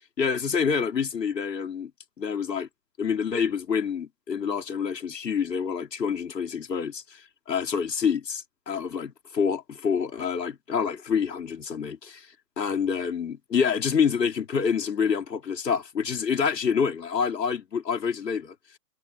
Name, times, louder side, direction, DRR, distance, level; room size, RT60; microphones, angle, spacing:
voice 1, 0.2-1.9 2.2-2.7 3.0-12.3 12.6-18.5, left 6 dB, 85° left, 2.9 m, -27 dB
hypercardioid pair, 155°, 48 cm